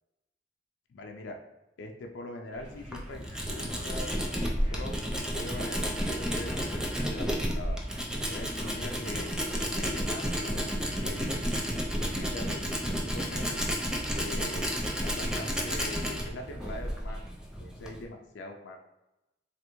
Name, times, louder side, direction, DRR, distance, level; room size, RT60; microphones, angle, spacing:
voice 1, 0.9-1.4 1.8-5.0 5.3-5.9 6.2-7.8 8.3-10.7 11.0-11.5 12.0-13.6 14.1-17.2 17.6-18.8, left 2 dB, 85° left, 3 dB, 0.4 m, -42 dB
sound 1, 2.5-17.3, equal, 35° right, 1.1 m, -52 dB
Tools, 2.7-18.0, equal, 5° right, 0.4 m, -32 dB
3.2 x 2.4 x 3.0 m, 0.97 s
head